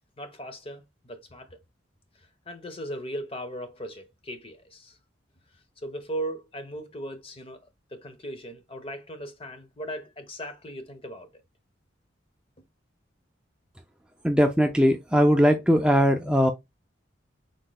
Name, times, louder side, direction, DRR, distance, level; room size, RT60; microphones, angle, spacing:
voice 1, 0.2-1.6 2.5-5.0 5.8-7.6 7.9-11.3, right 1 dB, 30° left, 0.9 m, -38 dB
voice 2, 14.2-16.5, equal, 5° right, 0.4 m, -20 dB
5.9 x 3.8 x 2.2 m
head